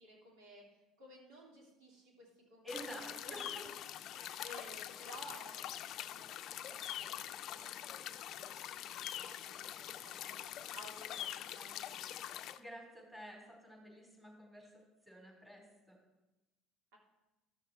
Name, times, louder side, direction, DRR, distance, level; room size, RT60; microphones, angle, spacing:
voice 1, 0.0-3.7 4.1-5.8 6.1-7.7 8.1-12.1 16.9-17.0, equal, 75° right, -1 dB, 3.1 m, -56 dB
voice 2, 2.6-3.6 12.5-16.0, equal, 10° right, -1 dB, 4.0 m, -50 dB
sound 1, 2.7-12.6, left 11 dB, 60° left, 0.5 m, -44 dB
12.5 x 6.5 x 4.3 m, 1.0 s
supercardioid pair, 95°, 0 cm